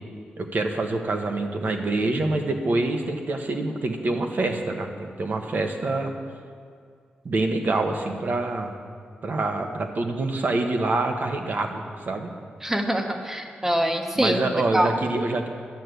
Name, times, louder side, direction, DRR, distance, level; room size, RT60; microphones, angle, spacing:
voice 1, 0.4-6.1 7.2-8.7 9.2-12.3 14.1-15.5, right 2 dB, 55° right, 4 dB, 1.3 m, -26 dB
voice 2, 12.6-14.9, right 1 dB, 10° right, 4 dB, 1.2 m, -24 dB
12.0 x 6.6 x 9.3 m, 2.2 s
cardioid pair, 90°, 4 cm